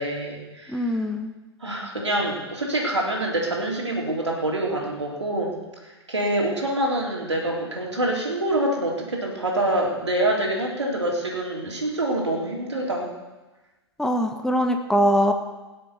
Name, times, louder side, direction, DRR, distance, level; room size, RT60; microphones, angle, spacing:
voice 1, 0.0-0.9 1.6-5.6 5.8-13.1, right 1 dB, 90° right, -1 dB, 3.8 m, -26 dB
voice 2, 0.7-1.3 14.0-15.3, equal, 5° left, 4 dB, 1.3 m, -22 dB
22.0 x 7.6 x 6.8 m, 1.1 s
figure-of-eight pair, 105°, 14 cm